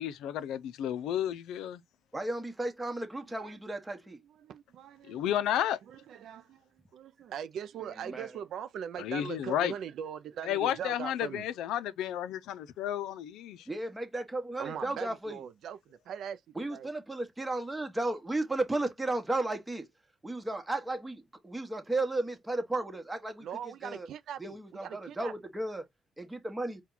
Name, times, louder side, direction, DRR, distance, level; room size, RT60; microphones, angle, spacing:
voice 1, 0.0-1.8 5.1-5.8 9.0-9.7 10.4-13.7, left 11 dB, 85° left, 0.4 m, -32 dB
voice 2, 2.1-4.2 8.1-8.3 13.7-15.4 16.6-19.8 20.2-23.5 23.8-24.1 24.4-25.8 26.2-26.8, right 2 dB, 15° right, 1.0 m, -34 dB
voice 3, 3.3-5.2 5.9-11.5 14.6-16.4 16.7-16.9 23.4-25.3, right 8 dB, 75° right, 0.4 m, -41 dB
4.3 x 2.2 x 3.8 m
cardioid pair, 90°, 0 cm